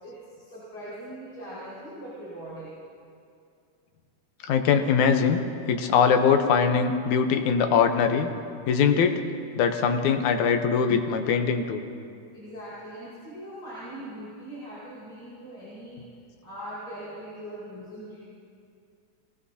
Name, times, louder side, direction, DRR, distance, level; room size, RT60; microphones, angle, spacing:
voice 1, 0.0-2.8 12.3-16.0 16.4-18.2, right 1 dB, 45° left, -11 dB, 6.0 m, -41 dB
voice 2, 4.4-5.4 5.7-8.3 8.7-9.2 9.6-11.8, left 6 dB, 80° left, 6 dB, 2.3 m, -22 dB
23.0 x 18.0 x 2.8 m, 2.4 s
omnidirectional pair, 3.4 m